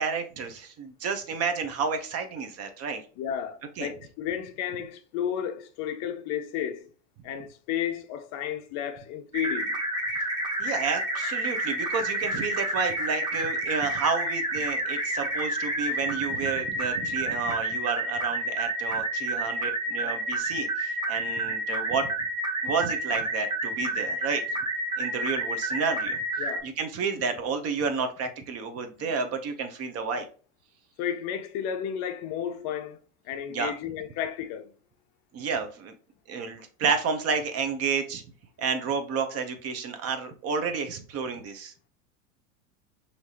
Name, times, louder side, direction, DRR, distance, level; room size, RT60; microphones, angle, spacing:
voice 1, 0.0-3.0 3.8-3.9 10.6-22.1 22.6-24.4 25.0-26.2 26.6-30.3 33.5-33.7 35.3-35.9 36.3-38.2 38.6-41.7, right 5 dB, 35° right, 0.8 m, -30 dB
voice 2, 3.2-6.9 7.2-9.8 26.4-26.7 29.0-29.1 31.0-33.0 33.2-34.7, left 9 dB, 40° left, 0.5 m, -32 dB
sound 1, 9.3-26.6, right 1 dB, 10° right, 1.0 m, -30 dB
4.7 x 2.8 x 2.8 m
hypercardioid pair, 95°, 43 cm